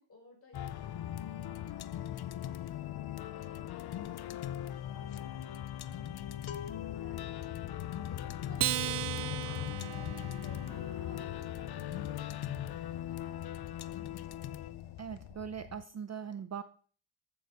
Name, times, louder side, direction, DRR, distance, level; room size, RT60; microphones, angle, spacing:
voice 1, 0.0-2.6 3.2-14.3, equal, 25° left, -2 dB, 6.3 m, -59 dB
sound 1, 0.5-15.8, left 11 dB, 50° left, 0.6 m, -39 dB
sound 2, 4.0-4.2 4.5-13.1 13.3-13.6 13.8-14.7 14.9-15.3, left 8 dB, 70° left, 1.1 m, -52 dB
Acoustic guitar, 8.6-11.2, right 16 dB, 90° right, 0.7 m, -36 dB
voice 2, 15.0-16.6, right 7 dB, 35° right, 11 dB, 0.6 m, -40 dB
14.5 x 7.0 x 5.2 m, 0.43 s
wide cardioid pair, 140°, 50 cm